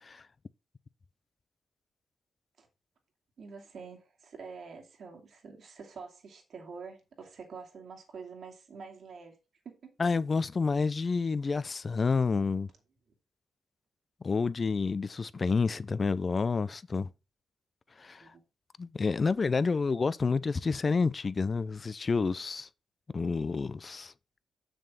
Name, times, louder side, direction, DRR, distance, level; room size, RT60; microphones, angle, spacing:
voice 1, 3.4-9.4 9.6-9.9 18.2-18.4, right 5 dB, 65° right, 2.5 m, -46 dB
voice 2, 10.0-12.7 14.2-17.1 18.0-18.3 18.8-22.7 23.1-24.1, left 4 dB, 40° left, 0.5 m, -29 dB
6.9 x 6.3 x 4.2 m
cardioid pair, 70°, 0 cm